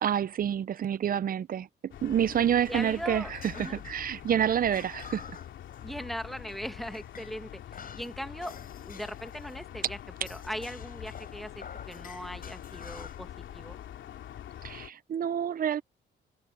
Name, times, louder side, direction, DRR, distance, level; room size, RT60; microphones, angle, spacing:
voice 1, 0.0-5.2 14.6-15.8, right 9 dB, 45° right, 0.6 m, -28 dB
sound 1, 1.9-14.9, left 11 dB, 75° left, 2.8 m, -45 dB
sound 2, 2.2-6.0 6.3-7.4 7.7-9.7 10.2-13.3, left 6 dB, 45° left, 6.3 m, -49 dB
voice 2, 2.7-3.8 5.8-13.8, equal, ahead, 1.9 m, -40 dB
cardioid pair, 90°, 20 cm